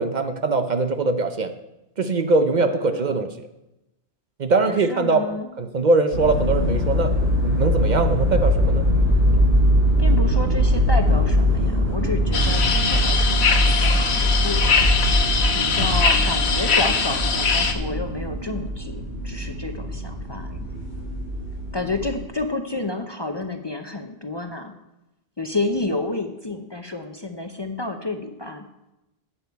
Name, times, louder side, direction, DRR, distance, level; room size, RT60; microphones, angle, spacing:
voice 1, 0.0-1.5 2.0-3.3 4.4-5.2 5.6-7.1 7.4-8.8, right 3 dB, 50° right, 8 dB, 0.7 m, -21 dB
voice 2, 2.6-3.3 4.6-5.5 10.0-14.7 15.5-20.7 21.7-24.8 25.4-28.7, left 2 dB, 30° left, 6 dB, 0.6 m, -30 dB
sound 1, 6.1-22.2, equal, 70° right, 4.5 m, -21 dB
sound 2, 12.3-17.7, left 5 dB, 90° left, 1.3 m, -22 dB
12.0 x 8.7 x 4.6 m, 0.94 s
omnidirectional pair, 1.1 m